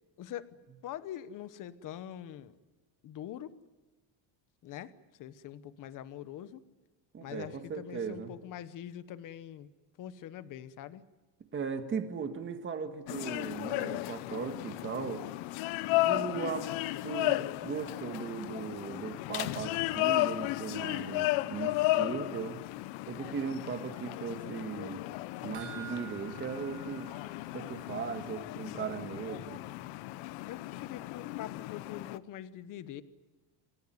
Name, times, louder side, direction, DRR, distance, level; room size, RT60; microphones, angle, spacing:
voice 1, 0.2-2.6 3.0-3.6 4.6-4.9 5.2-6.6 7.2-9.7 10.0-11.1 30.4-33.0, left 11 dB, 40° left, 14 dB, 1.1 m, -44 dB
voice 2, 7.1-8.3 11.5-15.2 16.0-16.7 17.0-22.6 23.1-25.0 25.4-27.1 27.5-29.6, right 6 dB, 25° right, 6 dB, 2.0 m, -38 dB
sound 1, 13.1-32.2, left 18 dB, 70° left, 0.9 m, -34 dB
sound 2, 25.5-28.1 28.4-28.5 28.9-29.0, right 9 dB, 60° right, 5.5 m, -49 dB
28.5 x 16.0 x 9.4 m, 1.3 s
cardioid pair, 170°, 49 cm